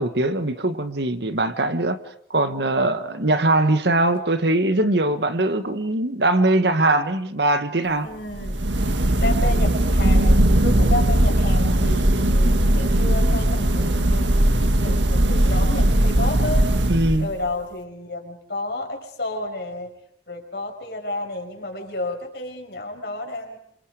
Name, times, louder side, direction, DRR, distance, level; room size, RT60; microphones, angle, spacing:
voice 1, 0.0-2.0 2.3-8.1 16.9-17.3, right 2 dB, 65° right, 1.7 m, -21 dB
voice 2, 8.0-8.6 9.0-16.7 17.2-19.9 20.3-23.6, left 2 dB, 60° left, 5.7 m, -31 dB
sound 1, 8.3-17.5, right 1 dB, 85° right, 1.8 m, -19 dB
27.5 x 27.5 x 5.1 m
head